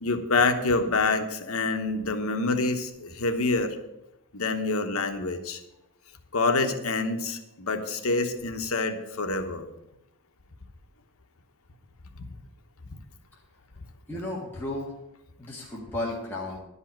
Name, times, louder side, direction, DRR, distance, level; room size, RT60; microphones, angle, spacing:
voice 1, 0.0-3.7 4.3-5.6 6.3-9.6, left 3 dB, 70° left, 7 dB, 1.1 m, -26 dB
voice 2, 14.1-14.9 15.4-16.6, left 2 dB, 10° left, -5 dB, 1.8 m, -33 dB
11.0 x 5.5 x 8.7 m, 0.90 s
head